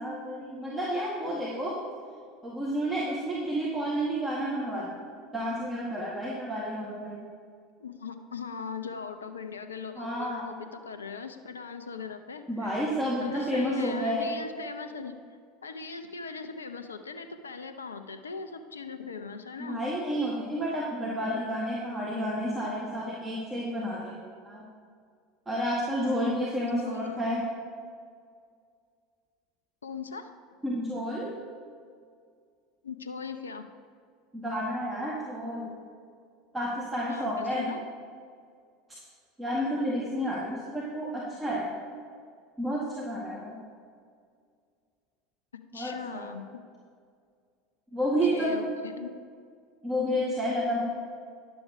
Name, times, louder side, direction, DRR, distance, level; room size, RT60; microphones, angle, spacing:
voice 1, 0.0-1.7 2.4-4.9 5.3-7.2 10.0-10.5 12.5-14.3 19.6-24.1 24.5-24.6 25.5-27.4 30.6-31.3 34.3-35.7 36.5-37.7 39.4-41.7 42.6-43.6 45.7-46.3 47.9-48.6 49.8-50.8, equal, 15° right, -6 dB, 1.9 m, -30 dB
voice 2, 7.8-12.8 13.2-19.8 26.6-27.2 29.8-30.3 32.8-33.6 37.1-37.8 45.7-46.5 48.2-49.1, left 5 dB, 80° left, 8 dB, 0.6 m, -40 dB
11.0 x 7.0 x 5.0 m, 2.1 s
figure-of-eight pair, 75°, 0 cm